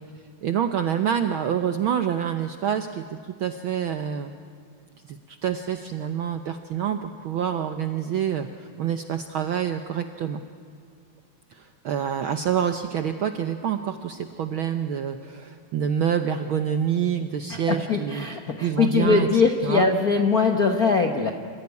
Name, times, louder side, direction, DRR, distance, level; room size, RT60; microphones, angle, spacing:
voice 1, 0.4-4.3 5.0-8.5 8.8-10.4 11.5-18.3 18.6-19.9, right 8 dB, 90° right, 8 dB, 1.1 m, -27 dB
voice 2, 17.5-21.3, left 4 dB, 60° left, 4 dB, 0.9 m, -21 dB
27.0 x 15.0 x 9.7 m, 2.3 s
omnidirectional pair, 3.4 m